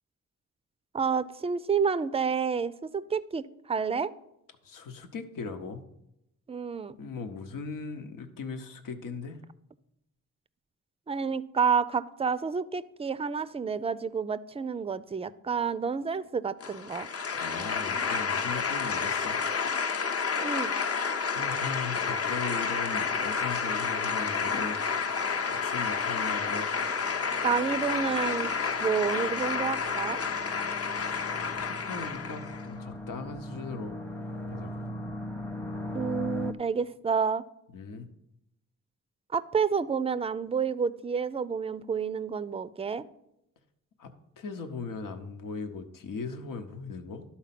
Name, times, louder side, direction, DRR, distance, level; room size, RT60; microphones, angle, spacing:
voice 1, 0.9-4.1 6.5-7.0 11.1-17.1 20.4-20.7 27.4-28.5 28.8-30.2 35.9-37.4 39.3-43.0, right 6 dB, 20° right, 17 dB, 0.4 m, -29 dB
voice 2, 4.6-5.8 7.0-9.4 17.3-19.4 21.3-24.8 25.5-26.7 30.9-31.3 31.6-34.0 34.5-34.7 37.7-38.1 44.0-47.2, left 4 dB, 85° left, 7 dB, 1.0 m, -39 dB
sound 1, 16.6-32.7, left 5 dB, 45° left, 0.8 m, -30 dB
sound 2, 24.4-36.5, left 1 dB, 5° left, 0.7 m, -41 dB
12.0 x 4.3 x 5.9 m, 0.84 s
cardioid pair, 85°, 32 cm